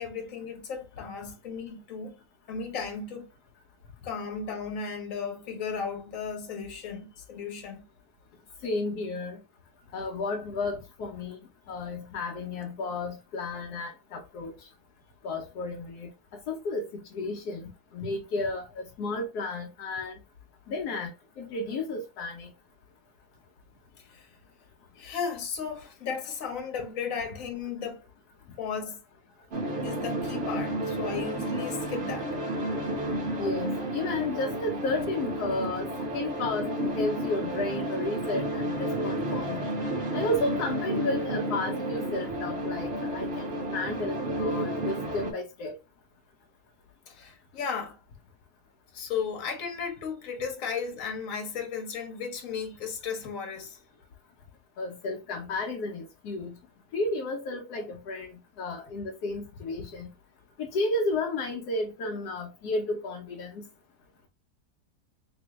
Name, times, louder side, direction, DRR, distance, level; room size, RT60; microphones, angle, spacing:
voice 1, 0.0-2.2 2.5-3.3 4.0-7.8 18.0-18.1 24.0-24.3 24.9-28.0 28.6-29.0 29.8-32.4 47.1-48.0 48.9-53.8, left 6 dB, 60° left, 1.4 m, -35 dB
voice 2, 8.6-9.4 9.9-11.4 11.7-14.7 15.2-16.1 16.5-16.9 17.1-20.2 20.7-22.5 33.4-35.9 36.1-39.8 40.1-45.8 54.8-56.5 56.9-58.3 58.6-60.1 60.6-63.6, left 2 dB, 85° left, 1.3 m, -32 dB
sound 1, 29.5-45.3, right 1 dB, 45° right, 1.1 m, -31 dB
3.4 x 3.0 x 3.0 m
omnidirectional pair, 1.6 m